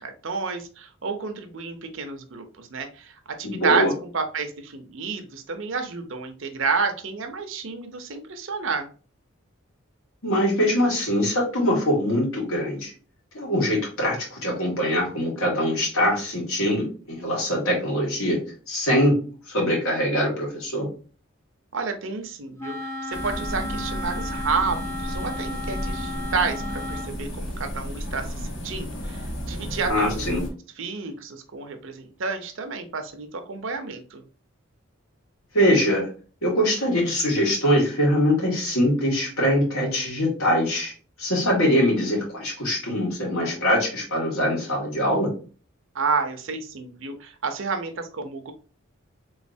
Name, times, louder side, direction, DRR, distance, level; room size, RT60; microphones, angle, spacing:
voice 1, 0.0-8.9 21.7-30.4 30.8-34.2 45.9-48.5, right 4 dB, 65° right, 7 dB, 0.6 m, -30 dB
voice 2, 3.4-3.9 10.2-12.9 13.3-18.4 18.7-19.2 19.5-20.9 29.9-30.4 35.5-36.1 36.4-40.9 41.2-45.3, equal, 85° left, -1 dB, 1.7 m, -23 dB
Wind instrument woodwind instrument, 22.6-27.2, left 1 dB, 15° left, 0.4 m, -34 dB
sound 1, 23.1-30.5, equal, 65° left, 1.2 m, -33 dB
3.7 x 3.1 x 2.6 m, 0.38 s
head